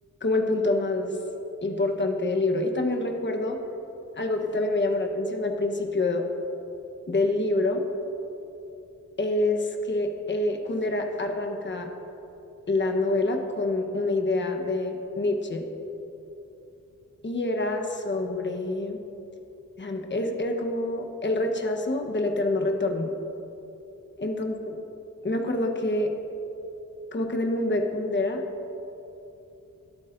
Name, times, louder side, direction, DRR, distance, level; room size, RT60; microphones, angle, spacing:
voice 1, 0.2-1.1 1.6-3.6 4.2-6.2 7.1-7.8 9.2-11.9 12.7-15.6 17.2-19.0 19.8-23.1 24.2-24.8 25.2-26.1 27.1-28.4, left 2 dB, 35° left, 3 dB, 1.1 m, -26 dB
23.5 x 8.9 x 2.6 m, 2.9 s
wide cardioid pair, 100°, 33 cm